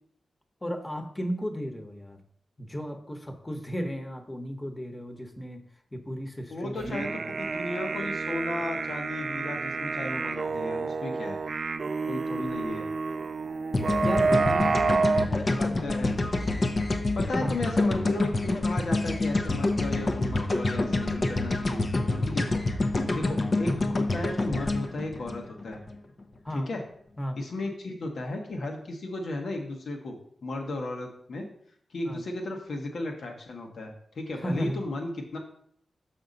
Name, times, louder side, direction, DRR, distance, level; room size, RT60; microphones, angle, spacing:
voice 1, 0.6-2.2 2.6-5.6 5.9-7.4 14.0-16.0 17.4-17.6 26.4-26.7 27.2-27.4 32.0-32.2 34.4-34.8, equal, 20° left, 5 dB, 1.2 m, -35 dB
voice 2, 6.5-7.1 7.6-11.4 12.1-12.9 15.6-16.1 17.1-25.8 26.5-26.8 27.4-30.1 30.4-31.5 31.9-35.4, left 2 dB, 75° left, 2 dB, 1.3 m, -35 dB
sound 1, 6.8-15.3, right 4 dB, 55° right, 0.3 m, -29 dB
sound 2, 13.7-25.9, left 2 dB, 50° left, 0.8 m, -27 dB
6.2 x 5.8 x 4.0 m, 0.64 s
cardioid pair, 55°, 0 cm